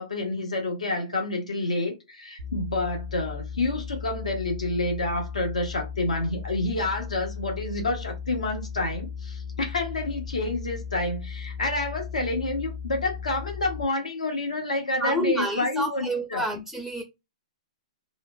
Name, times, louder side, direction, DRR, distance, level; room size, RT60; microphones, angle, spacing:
voice 1, 0.0-16.4, left 2 dB, 85° left, 1.1 m, -29 dB
sound 1, 2.4-13.8, left 6 dB, 80° right, 0.6 m, -36 dB
voice 2, 15.0-17.0, equal, ahead, 0.4 m, -28 dB
3.0 x 2.1 x 2.2 m
hypercardioid pair, 125°, 4 cm